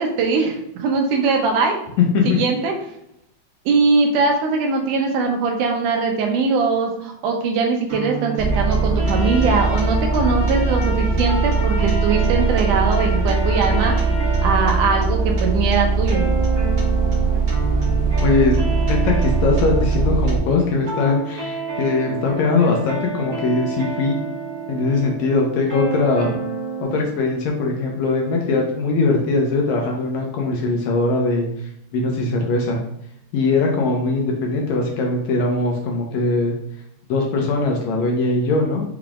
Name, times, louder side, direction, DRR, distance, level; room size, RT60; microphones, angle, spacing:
voice 1, 0.0-1.8 2.3-2.7 3.7-14.1 14.4-16.3, right 4 dB, 80° right, 2 dB, 2.3 m, -21 dB
sound 1, 7.9-27.0, right 5 dB, 30° right, 1.5 m, -30 dB
sound 2, 8.4-20.4, right 4 dB, 50° right, 1.3 m, -20 dB
Trumpet, 9.0-14.7, left 3 dB, 50° left, 2.7 m, -35 dB
voice 2, 18.2-24.2 24.7-26.4 26.8-32.8 33.3-36.5 37.1-38.8, left 3 dB, 75° left, 0 dB, 1.8 m, -21 dB
5.7 x 3.5 x 2.4 m, 0.77 s
omnidirectional pair, 3.6 m